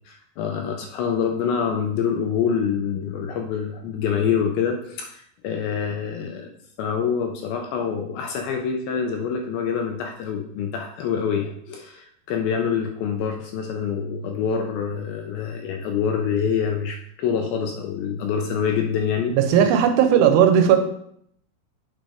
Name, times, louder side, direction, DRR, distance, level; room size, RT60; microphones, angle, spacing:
voice 1, 0.1-6.5 6.8-19.4, left 7 dB, 80° left, 4 dB, 2.2 m, -26 dB
voice 2, 19.3-20.8, right 8 dB, 90° right, 7 dB, 2.8 m, -16 dB
8.4 x 5.1 x 3.5 m, 0.69 s
omnidirectional pair, 4.7 m